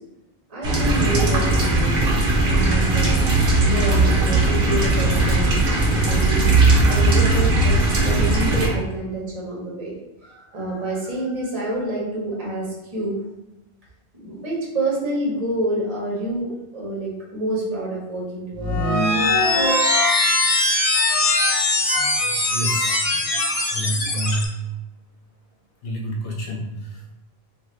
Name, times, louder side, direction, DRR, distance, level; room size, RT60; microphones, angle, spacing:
voice 1, 0.5-3.2 3.6-9.9 10.2-13.2 14.2-18.8 19.6-19.7, right 1 dB, 35° right, -5 dB, 0.9 m, -28 dB
sound 1, 0.6-8.7, right 2 dB, 65° right, 0.9 m, -18 dB
sound 2, 18.5-24.5, left 2 dB, 50° left, 0.4 m, -20 dB
voice 2, 22.2-23.1 23.7-24.5 25.8-27.1, right 1 dB, 65° left, 0 dB, 0.8 m, -28 dB
2.5 x 2.4 x 3.1 m, 0.96 s
omnidirectional pair, 1.1 m